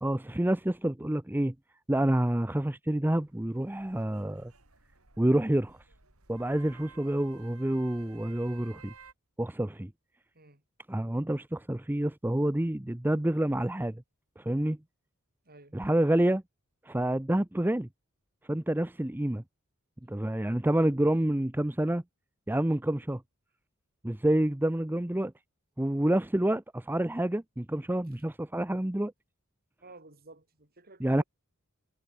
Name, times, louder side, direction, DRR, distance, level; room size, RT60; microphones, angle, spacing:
voice 1, 0.0-1.5 1.9-4.5 5.2-5.8 6.3-8.9 9.4-9.9 10.9-14.0 14.4-14.8 15.7-16.4 16.8-17.9 18.5-19.4 20.1-22.0 22.5-23.2 24.0-25.3 25.8-29.1 31.0-31.2, right 1 dB, 10° right, 0.6 m, -28 dB
sound 1, 3.2-9.1, right 5 dB, 85° right, 4.7 m, -55 dB
voice 2, 15.5-15.8 29.8-31.2, right 2 dB, 45° right, 7.3 m, -53 dB
head